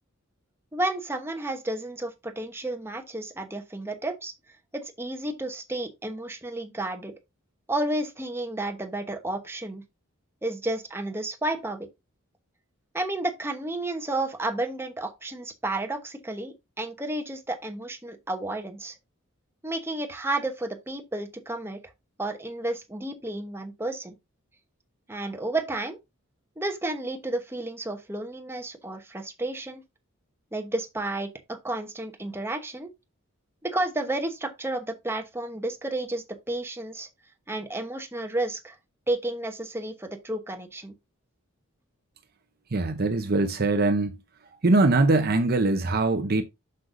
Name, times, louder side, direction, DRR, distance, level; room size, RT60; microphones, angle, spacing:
voice 1, 0.7-4.3 4.7-7.1 7.7-9.8 10.4-11.9 12.9-19.0 19.6-21.8 22.2-24.1 25.1-26.0 26.6-29.8 30.5-32.9 33.6-37.1 37.5-38.8 39.1-40.9, right 2 dB, 10° right, 0.9 m, -31 dB
voice 2, 42.7-44.2 44.6-46.4, right 2 dB, 45° right, 0.7 m, -22 dB
7.7 x 6.5 x 2.6 m
head